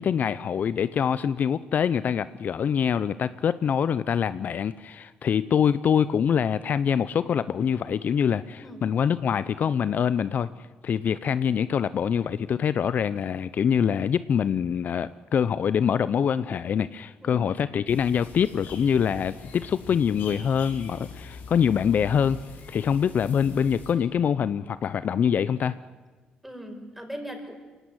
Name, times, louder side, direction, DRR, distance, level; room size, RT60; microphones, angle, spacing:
voice 1, 0.0-10.5 10.8-22.4 22.7-25.7, left 7 dB, 55° left, 15 dB, 0.7 m, -24 dB
sound 1, 17.9-23.9, left 5 dB, 75° left, 6.1 m, -43 dB
voice 2, 26.4-27.5, equal, 5° right, 5 dB, 5.8 m, -39 dB
23.0 x 17.5 x 9.6 m, 1.3 s
supercardioid pair, 70°, 3 cm